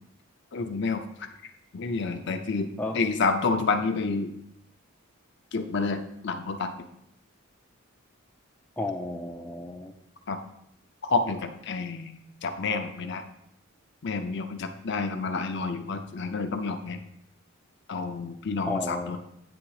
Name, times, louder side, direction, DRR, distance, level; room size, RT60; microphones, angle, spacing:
voice 1, 0.5-1.3 1.7-2.7 2.9-4.3 5.5-6.9 10.3-10.4 11.0-13.2 14.0-17.0 17.9-19.2, left 4 dB, 55° left, 6 dB, 0.6 m, -29 dB
voice 2, 8.8-9.9 18.6-19.2, left 2 dB, 5° left, 2 dB, 0.4 m, -32 dB
8.8 x 3.5 x 4.8 m, 0.75 s
head